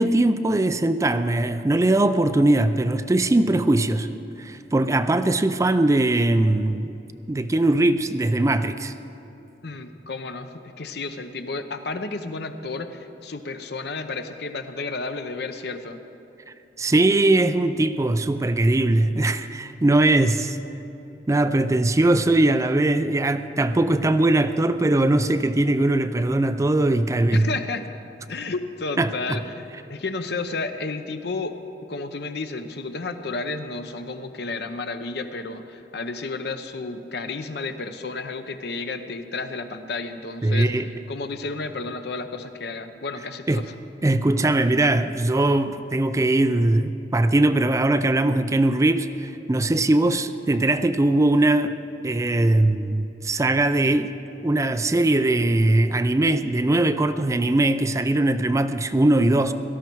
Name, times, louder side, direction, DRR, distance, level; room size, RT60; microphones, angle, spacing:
voice 1, 0.0-4.1 4.4-6.9 7.3-8.9 16.8-20.6 21.3-27.5 29.0-29.4 40.4-40.9 43.5-43.6 44.0-51.7 52.0-54.1 54.4-59.5, right 2 dB, 20° right, 10 dB, 0.4 m, -20 dB
voice 2, 9.6-16.0 27.3-27.8 28.3-31.6 31.9-43.6, left 3 dB, 65° left, 8 dB, 0.8 m, -32 dB
17.5 x 13.0 x 4.6 m, 2.9 s
head